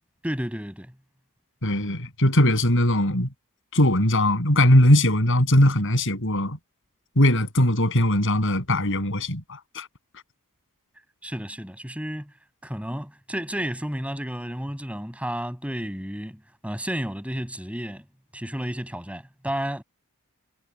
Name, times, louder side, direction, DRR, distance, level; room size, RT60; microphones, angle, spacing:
voice 1, 0.2-0.9 11.2-12.3 12.6-18.1 18.3-19.8, equal, 5° right, 7.9 m, -32 dB
voice 2, 1.6-3.3 3.7-6.6 7.2-9.9, left 1 dB, 60° left, 7.5 m, -20 dB
head